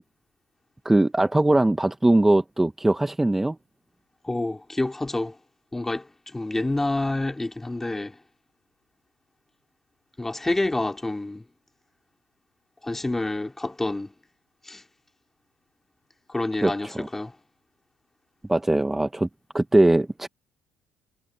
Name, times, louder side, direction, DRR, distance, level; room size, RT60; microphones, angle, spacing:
voice 1, 0.9-3.6 16.6-17.1 18.5-19.3 19.5-20.3, right 1 dB, 10° right, 1.7 m, -21 dB
voice 2, 4.2-5.4 5.7-8.2 10.2-11.4 12.8-14.1 14.6-14.8 16.3-17.4, left 2 dB, 15° left, 3.5 m, -28 dB
hypercardioid pair, 60°, 2 cm